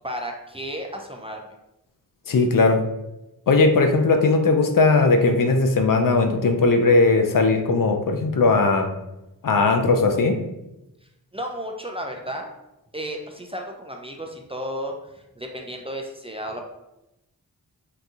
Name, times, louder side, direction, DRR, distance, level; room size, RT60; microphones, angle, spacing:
voice 1, 0.0-1.4 11.3-12.5 12.9-16.6, equal, 15° right, 1 dB, 0.3 m, -33 dB
voice 2, 2.3-2.8 3.5-8.9 9.4-10.4, left 3 dB, 60° left, 5 dB, 0.5 m, -18 dB
3.9 x 2.7 x 2.4 m, 0.92 s
wide cardioid pair, 60°, 38 cm